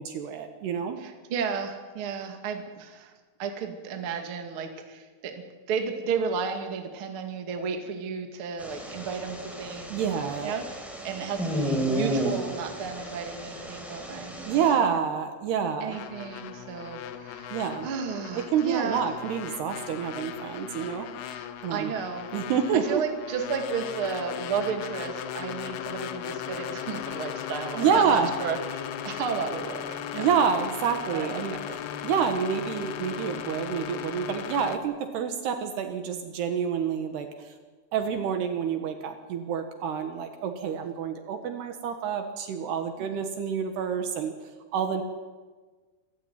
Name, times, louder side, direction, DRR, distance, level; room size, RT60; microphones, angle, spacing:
voice 1, 0.0-1.0 9.9-10.5 14.5-16.0 17.5-17.9 18.5-21.1 21.6-21.9 22.3-23.0 27.8-28.3 30.1-31.5 32.0-37.5 37.9-44.3 44.7-45.0, right 7 dB, 65° right, 7 dB, 3.1 m, -28 dB
voice 2, 1.0-3.1 3.4-15.0 15.8-19.1 21.2-22.3 22.7-30.3 31.1-31.3 31.7-31.8, right 6 dB, 45° right, 5 dB, 1.9 m, -33 dB
sound 1, 8.6-14.7, right 1 dB, ahead, 3.8 m, -33 dB
sound 2, 15.9-34.8, left 10 dB, 70° left, 2.5 m, -37 dB
27.0 x 14.5 x 9.4 m, 1.4 s
omnidirectional pair, 5.7 m